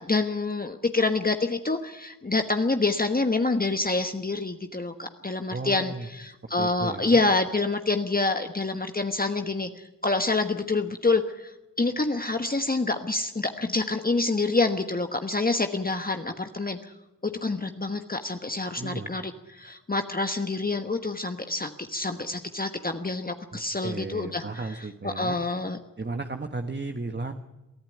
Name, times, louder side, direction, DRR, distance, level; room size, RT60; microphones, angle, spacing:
voice 1, 0.0-16.9 17.2-19.2 19.5-25.8, left 3 dB, 25° left, 6 dB, 1.3 m, -27 dB
voice 2, 5.5-6.1 6.6-7.2 18.8-19.1 23.5-25.4 26.0-27.3, right 3 dB, 30° right, 6 dB, 1.4 m, -34 dB
23.0 x 14.5 x 9.3 m, 1.0 s
wide cardioid pair, 75°, 33 cm